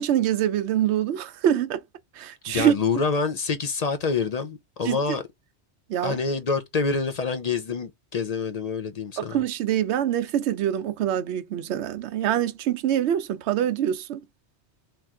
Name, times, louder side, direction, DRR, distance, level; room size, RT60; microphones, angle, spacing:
voice 1, 0.0-1.8 2.2-2.7 4.8-5.2 5.9-6.2 9.2-14.2, right 10 dB, 75° right, 0.9 m, -25 dB
voice 2, 2.5-5.2 6.0-9.4, left 5 dB, 50° left, 0.5 m, -27 dB
3.3 x 3.0 x 3.6 m
omnidirectional pair, 1.2 m